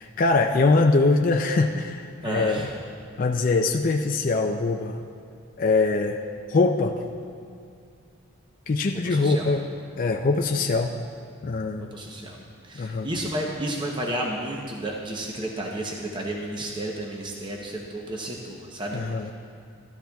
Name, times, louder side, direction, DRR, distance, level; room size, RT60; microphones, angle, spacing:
voice 1, 0.0-2.7 3.2-5.0 5.6-6.2 6.5-7.0 8.7-9.7 10.0-11.0 11.4-11.9 12.8-13.1 18.9-19.3, left 3 dB, 40° left, 2 dB, 0.3 m, -23 dB
voice 2, 2.2-2.7 9.0-9.5 11.8-19.3, right 1 dB, 20° right, -1 dB, 0.7 m, -32 dB
13.0 x 12.5 x 2.3 m, 2.3 s
head